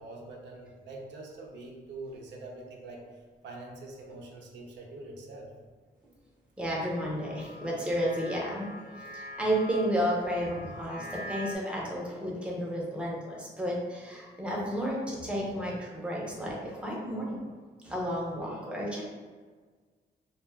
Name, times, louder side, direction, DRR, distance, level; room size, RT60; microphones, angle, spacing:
voice 1, 0.0-3.1 3.4-5.5, right 2 dB, 85° right, 0 dB, 0.5 m, -44 dB
voice 2, 6.6-17.4 17.8-19.0, equal, 5° right, -4 dB, 0.6 m, -32 dB
sound 1, 6.7-11.5, equal, 50° right, 0.7 m, -44 dB
2.2 x 2.2 x 3.2 m, 1.5 s
cardioid pair, 110°, 18 cm